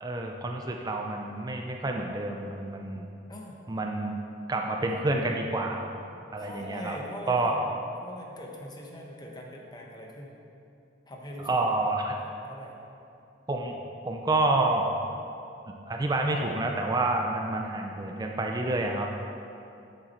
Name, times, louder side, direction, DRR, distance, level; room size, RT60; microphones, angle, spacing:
voice 1, 0.0-3.1 3.7-4.2 4.5-5.9 6.3-7.0 7.3-7.5 11.5-12.2 13.5-13.8 14.0-14.9 15.9-19.1, right 2 dB, 20° right, 2 dB, 0.4 m, -28 dB
voice 2, 3.3-3.6 4.7-5.1 6.4-7.7 8.0-10.3 11.1-11.8 12.2-12.8, left 1 dB, 20° left, -1 dB, 1.0 m, -42 dB
7.5 x 7.4 x 4.3 m, 2.8 s
head